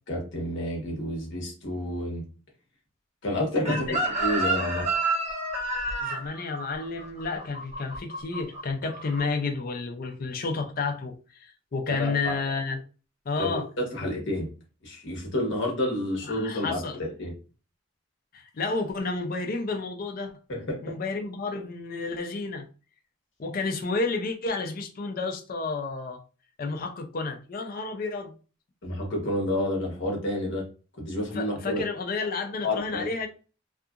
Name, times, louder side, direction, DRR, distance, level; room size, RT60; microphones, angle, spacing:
voice 1, 0.1-2.2 3.2-4.9 11.9-12.4 13.4-14.5 14.8-17.3 20.5-20.8 28.8-30.6 31.0-31.8 32.6-33.1, left 1 dB, 60° left, 1.0 m, -29 dB
voice 2, 3.7-4.0 6.0-12.8 13.3-13.7 16.2-17.0 18.3-20.3 20.8-22.7 23.4-26.2 26.6-28.3 31.3-33.3, left 3 dB, 45° left, 0.4 m, -31 dB
Chicken rooster, 3.7-8.6 8.9-9.2, right 2 dB, 35° right, 0.9 m, -29 dB
2.7 x 2.4 x 2.3 m
head